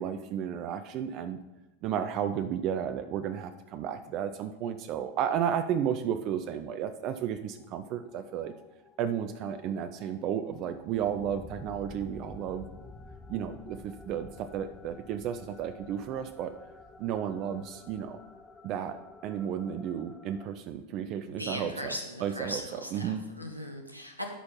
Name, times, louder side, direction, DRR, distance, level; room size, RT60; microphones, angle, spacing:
voice 1, 0.0-1.4 1.8-8.5 9.0-12.7 13.3-16.5 17.0-18.2 18.6-21.9 22.2-23.2, right 9 dB, 40° right, 9 dB, 0.4 m, -33 dB
sound 1, 7.4-20.5, left 3 dB, 15° left, 0.6 m, -51 dB
voice 2, 21.3-24.3, equal, 90° right, 3 dB, 1.2 m, -39 dB
11.5 x 4.4 x 5.5 m, 1.0 s
figure-of-eight pair, 90°, 0 cm